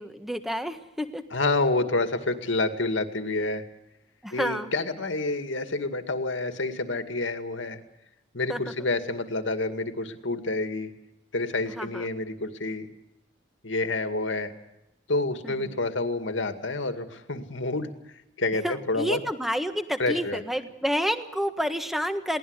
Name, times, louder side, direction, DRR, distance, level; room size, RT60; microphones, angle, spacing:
voice 1, 0.0-1.2 4.2-4.7 8.5-8.6 11.7-12.1 15.4-15.7 18.6-22.4, equal, ahead, 8 dB, 1.5 m, -29 dB
voice 2, 1.3-3.6 4.3-7.8 8.3-10.9 11.3-12.9 13.6-14.5 15.1-17.9 18.4-19.2 20.0-20.4, left 2 dB, 80° left, 8 dB, 2.2 m, -28 dB
22.5 x 18.0 x 8.2 m, 0.92 s
head